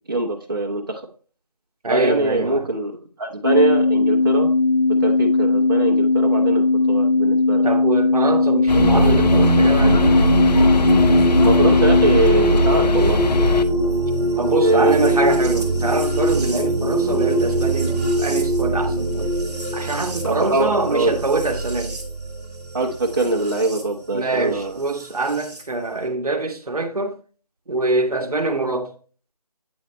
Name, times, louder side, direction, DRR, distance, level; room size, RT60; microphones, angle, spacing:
voice 1, 0.1-1.0 1.9-2.9 3.2-4.5 5.0-7.7 11.4-13.2 14.6-15.1 20.2-21.1 22.7-24.8, right 2 dB, 35° right, 0.8 m, -22 dB
voice 2, 1.8-2.7 7.6-10.2 14.4-19.3 19.7-21.9 24.1-27.2 27.7-28.9, right 2 dB, 65° right, 1.0 m, -24 dB
sound 1, 3.4-12.2, left 3 dB, 50° left, 0.8 m, -18 dB
sound 2, 8.7-13.6, left 3 dB, 85° left, 0.5 m, -21 dB
sound 3, 8.7-23.8 25.0-25.6, right 1 dB, 10° right, 0.9 m, -22 dB
8.8 x 4.0 x 3.0 m
figure-of-eight pair, 170°, 21 cm